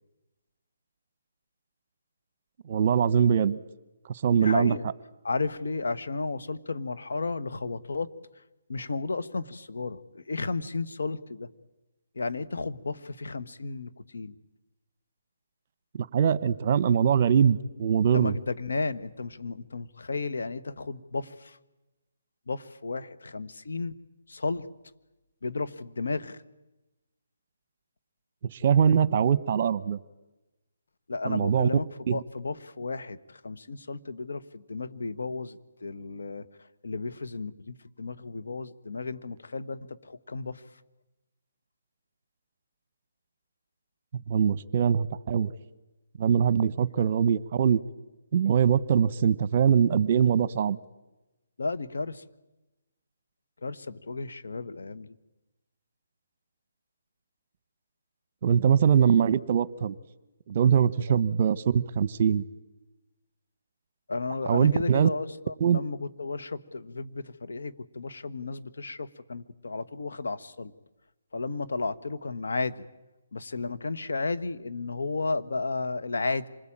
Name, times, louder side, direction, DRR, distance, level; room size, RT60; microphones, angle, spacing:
voice 1, 2.7-3.6 4.1-4.8 16.0-18.3 28.5-30.0 31.2-31.7 32.1-32.2 44.3-45.5 46.2-47.8 48.3-50.8 58.4-59.9 60.5-62.4 64.5-65.1 65.6-65.8, right 7 dB, 45° right, 19 dB, 1.0 m, -22 dB
voice 2, 4.4-4.9 5.2-8.1 8.7-11.5 12.1-14.3 18.1-21.6 22.5-24.0 24.3-24.7 25.4-26.4 31.1-36.5 36.8-40.6 47.0-47.1 51.6-52.2 53.6-55.1 61.1-61.2 64.1-70.7 71.3-72.8 73.3-76.5, left 3 dB, 75° left, 9 dB, 1.5 m, -33 dB
27.0 x 21.0 x 8.9 m, 1.0 s
hypercardioid pair, 150°, 0 cm